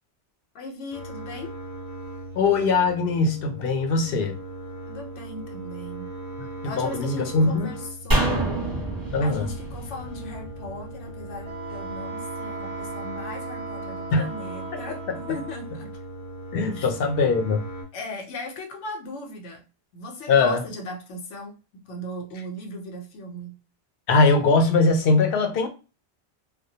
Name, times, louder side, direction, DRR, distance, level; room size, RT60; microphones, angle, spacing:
voice 1, 0.5-1.5 4.8-6.1 6.6-8.4 9.2-16.0 16.7-16.9 17.9-19.6 19.9-21.5 21.9-23.6, left 1 dB, 90° left, 0.9 m, -37 dB
sound 1, 0.9-17.8, right 2 dB, 30° left, 0.3 m, -38 dB
voice 2, 2.4-4.4 6.6-7.7 9.1-9.5 14.1-14.2 16.5-17.6 20.3-20.6 24.1-25.7, left 3 dB, 60° left, 0.7 m, -21 dB
sound 2, 8.1-11.4 11.7-11.8, right 1 dB, 20° right, 0.7 m, -27 dB
Wind instrument woodwind instrument, 11.4-15.6, right 4 dB, 65° right, 0.7 m, -38 dB
2.2 x 2.1 x 2.7 m
omnidirectional pair, 1.2 m